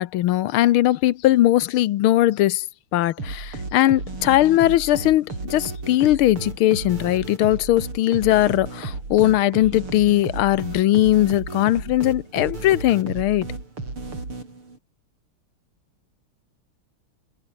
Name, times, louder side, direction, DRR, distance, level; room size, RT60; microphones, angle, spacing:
voice 1, 0.0-2.6 2.9-13.5, left 14 dB, 80° left, 1.6 m, -19 dB
sound 1, 3.2-14.8, right 3 dB, 85° right, 6.8 m, -34 dB
omnidirectional pair, 2.3 m